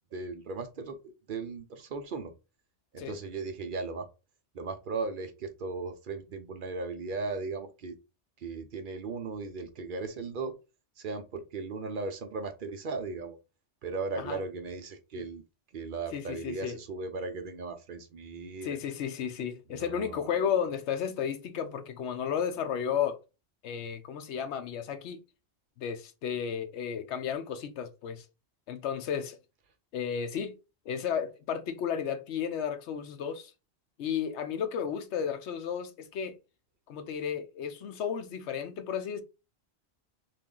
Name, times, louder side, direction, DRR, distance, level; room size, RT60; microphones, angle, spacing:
voice 1, 0.1-2.3 2.9-4.1 4.5-8.0 8.4-10.6 11.0-13.4 13.8-15.4 15.7-18.8 19.7-20.4, right 4 dB, 55° right, 0.7 m, -37 dB
voice 2, 16.1-16.8 17.2-17.3 18.6-23.2 23.6-25.2 25.8-28.3 28.7-29.4 29.9-30.5 30.9-33.5 34.0-36.3 36.9-39.2, left 8 dB, 75° left, 0.9 m, -33 dB
3.5 x 2.5 x 3.7 m
omnidirectional pair, 1.2 m